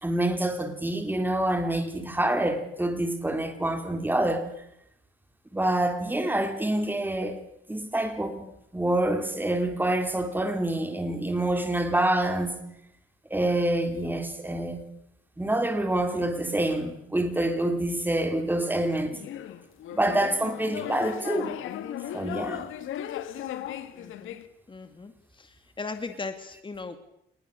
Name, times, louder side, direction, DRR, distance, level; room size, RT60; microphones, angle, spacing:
voice 1, 0.0-4.5 5.5-7.4 7.7-8.4 8.7-12.6 13.3-14.8 15.4-19.2 19.9-21.6 22.1-22.7, right 1 dB, 10° right, 3.7 m, -27 dB
sound 1, 19.1-24.4, left 11 dB, 85° left, 1.9 m, -36 dB
voice 2, 23.9-24.4 24.7-25.1 25.4-27.0, left 4 dB, 25° left, 2.0 m, -38 dB
28.0 x 21.0 x 6.8 m
cardioid pair, 90°, 20 cm